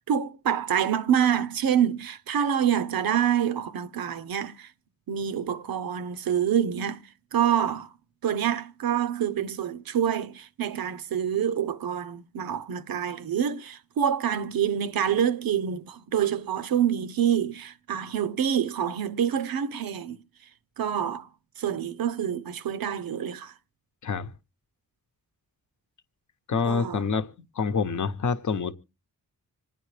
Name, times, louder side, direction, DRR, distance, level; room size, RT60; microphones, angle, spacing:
voice 1, 0.1-4.7 5.1-7.9 8.2-20.2 20.8-21.3 21.6-23.5 26.6-27.0, right 9 dB, 75° right, 0.6 m, -27 dB
voice 2, 26.5-28.7, left 5 dB, 55° left, 0.9 m, -27 dB
26.5 x 9.3 x 3.3 m
cardioid pair, 70°, 36 cm